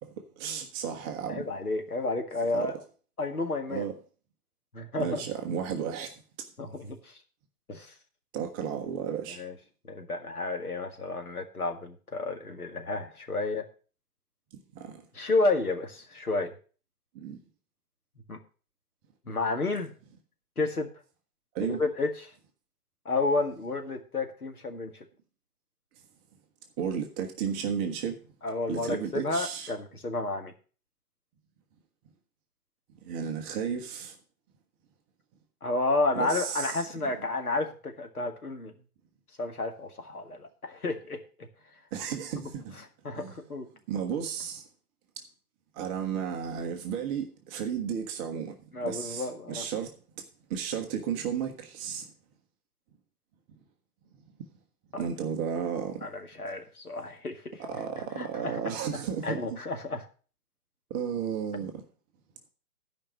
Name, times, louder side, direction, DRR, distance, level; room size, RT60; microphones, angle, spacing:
voice 1, 0.0-1.4 2.5-2.7 3.7-3.9 5.0-6.1 8.3-9.4 14.7-15.0 17.1-17.4 21.5-21.8 26.8-28.2 28.7-29.7 33.0-34.1 36.1-36.8 41.9-42.8 43.1-43.4 43.9-44.6 45.8-48.5 48.8-49.9 50.5-52.1 55.0-56.1 57.6-59.6 60.9-61.8, right 7 dB, 15° right, 0.7 m, -33 dB
voice 2, 1.3-2.7 3.2-3.9 4.7-5.2 6.6-7.2 7.7-7.9 9.4-9.5 9.9-13.6 15.1-16.5 18.3-18.4 19.3-19.9 20.6-20.9 21.6-22.3 23.1-24.9 28.4-30.5 35.6-38.7 39.4-41.2 43.0-43.7 48.7-49.7 54.9-55.0 56.0-57.6 58.2-58.6 58.9-60.0 61.6-61.7, left 3 dB, 75° left, 2.0 m, -31 dB
12.5 x 5.2 x 6.5 m
figure-of-eight pair, 120°, 45 cm